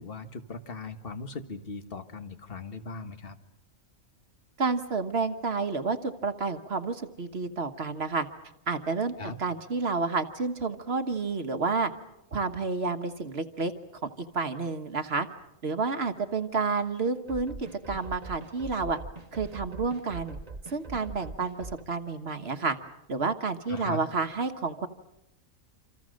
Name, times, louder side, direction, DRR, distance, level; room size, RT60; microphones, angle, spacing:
voice 1, 0.0-3.4 9.2-9.4 23.7-24.0, left 3 dB, 45° left, 8 dB, 1.7 m, -39 dB
voice 2, 4.6-8.3 8.7-11.9 12.3-13.7 14.0-15.3 15.6-19.0 19.3-20.4 20.7-22.8 23.1-24.9, right 4 dB, 55° right, 7 dB, 1.5 m, -30 dB
sound 1, 17.3-21.8, right 3 dB, 30° right, 1.4 m, -42 dB
27.5 x 27.5 x 6.4 m, 0.86 s
omnidirectional pair, 1.3 m